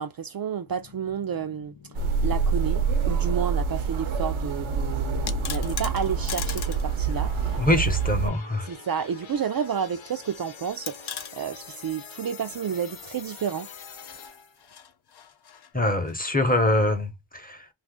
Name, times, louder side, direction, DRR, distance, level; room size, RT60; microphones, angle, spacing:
voice 1, 0.0-1.7 2.2-7.6 8.7-13.7, right 7 dB, 50° right, 0.5 m, -31 dB
sound 1, 0.7-14.7, left 7 dB, 75° left, 0.9 m, -46 dB
sound 2, 1.9-8.3, right 5 dB, 80° right, 0.8 m, -26 dB
sound 3, 5.1-6.9 7.2-7.3 8.7-9.4 9.7-9.8 10.9-11.4 13.3-16.2, left 8 dB, 55° left, 0.6 m, -39 dB
voice 2, 7.6-8.7 15.7-17.7, left 1 dB, 20° left, 0.8 m, -24 dB
2.5 x 2.5 x 3.6 m
wide cardioid pair, 85°, 48 cm